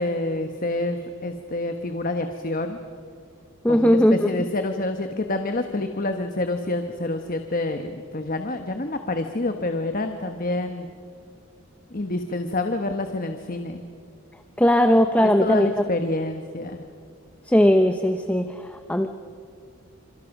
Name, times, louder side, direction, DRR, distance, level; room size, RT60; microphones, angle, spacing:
voice 1, 0.0-2.8 3.7-10.9 11.9-13.8 15.2-16.9, left 2 dB, 40° left, 6 dB, 1.2 m, -27 dB
voice 2, 3.6-4.2 14.6-15.7 17.5-19.1, equal, 5° left, 7 dB, 0.8 m, -18 dB
27.5 x 26.5 x 6.0 m, 2.3 s
head